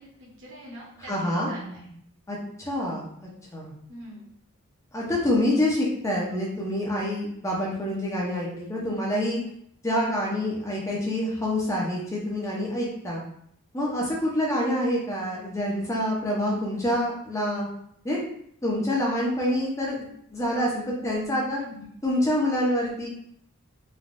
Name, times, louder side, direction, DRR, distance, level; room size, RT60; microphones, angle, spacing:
voice 1, 0.0-1.9 3.9-4.2 21.5-21.9, right 1 dB, 60° right, -4 dB, 0.8 m, -43 dB
voice 2, 1.1-1.5 2.3-3.1 3.5-3.7 4.9-9.4 9.8-13.2 13.7-17.7 18.0-18.2 18.6-21.6 22.0-23.1, left 1 dB, 15° left, -4 dB, 0.5 m, -26 dB
3.2 x 2.2 x 2.5 m, 0.70 s
head